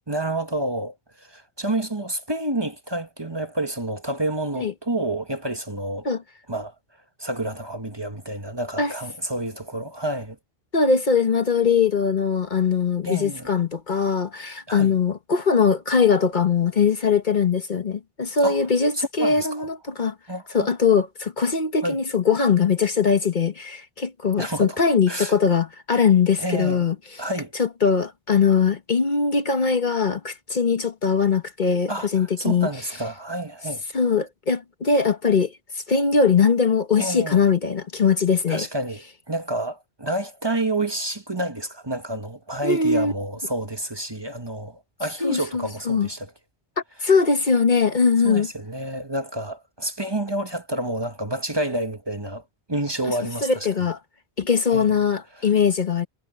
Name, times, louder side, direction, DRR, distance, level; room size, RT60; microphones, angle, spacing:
voice 1, 0.1-6.1 6.5-6.7 7.2-10.4 13.0-13.5 14.7-15.0 18.4-18.6 18.9-19.7 20.3-20.7 21.8-22.0 24.4-24.8 25.1-25.3 26.4-26.8 27.2-27.5 31.9-33.8 37.0-37.4 38.5-46.3 48.2-52.4 52.7-53.7 54.7-54.9 55.4-55.5, right 1 dB, 25° right, 1.4 m, -29 dB
voice 2, 10.7-20.1 20.5-26.9 27.6-32.7 33.9-35.5 35.9-38.7 42.6-43.1 45.2-46.1 47.0-48.5 53.4-54.0 54.4-56.1, left 5 dB, 50° left, 1.2 m, -21 dB
omnidirectional pair, 1.0 m